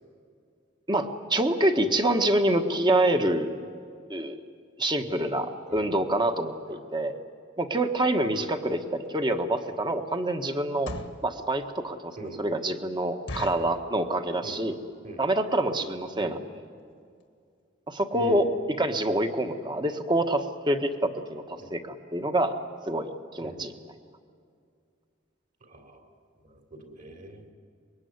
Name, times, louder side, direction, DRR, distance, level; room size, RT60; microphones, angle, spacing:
voice 1, 0.9-3.5 4.1-4.4 4.8-7.1 7.6-10.9 11.2-14.7 15.2-16.4 17.9-18.5 18.8-22.5 22.9-23.7, right 1 dB, 25° right, 6 dB, 1.5 m, -26 dB
voice 2, 5.7-6.1 6.7-6.8 8.3-8.5 12.2-12.4 14.4-14.6 15.0-15.2 16.2-16.4 18.1-18.4 21.6-21.7 23.4-23.6 25.6-26.1 26.4-27.4, right 1 dB, 45° right, 3 dB, 3.5 m, -41 dB
sound 1, 9.1-9.2 9.7-9.9 10.6-11.3 11.8-11.9 12.2-12.3 12.7-12.8 13.3-13.8 14.4-14.7 14.9-15.0 15.3-15.5 16.1-16.2 16.4-16.6 16.9-17.0 17.2-17.3, left 2 dB, 75° left, 1.6 m, -39 dB
25.0 x 22.0 x 9.6 m, 2.3 s
head